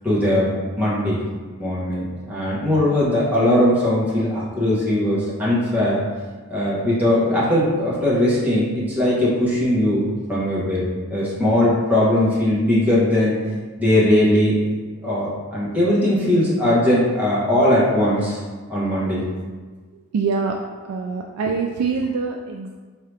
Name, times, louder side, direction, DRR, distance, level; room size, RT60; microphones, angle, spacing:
voice 1, 0.0-1.2 1.6-6.0 6.5-10.0 10.3-10.8 11.1-13.3 13.8-14.5 15.0-18.4 18.7-19.2, left 1 dB, 5° right, -9 dB, 1.1 m, -19 dB
voice 2, 20.1-20.6 20.9-22.8, right 5 dB, 85° right, 1 dB, 0.3 m, -24 dB
4.5 x 2.8 x 3.3 m, 1.4 s
head